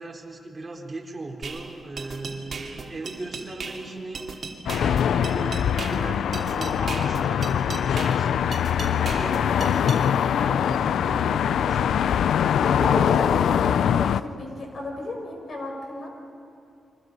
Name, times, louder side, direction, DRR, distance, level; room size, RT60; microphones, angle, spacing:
voice 1, 0.0-8.3 8.8-12.2, right 2 dB, 30° right, 0 dB, 4.2 m, -38 dB
sound 1, 1.4-10.0, right 4 dB, 55° right, 2.7 m, -37 dB
sound 2, 4.7-14.2, left 9 dB, 85° left, 0.4 m, -23 dB
voice 2, 12.8-16.1, left 1 dB, 55° left, 2 dB, 5.8 m, -32 dB
29.5 x 24.0 x 5.5 m, 2.7 s
cardioid pair, 75°, 0 cm